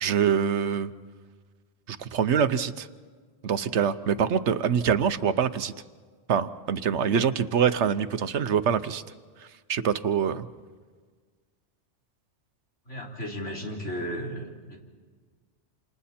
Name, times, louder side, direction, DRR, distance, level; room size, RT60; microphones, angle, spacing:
voice 1, 0.0-0.9 1.9-2.9 3.4-5.7 6.3-9.0 9.7-10.5, right 7 dB, 70° right, 12 dB, 1.1 m, -25 dB
voice 2, 12.9-14.8, equal, 80° left, -2 dB, 4.0 m, -34 dB
28.5 x 28.0 x 4.4 m, 1.5 s
omnidirectional pair, 1.2 m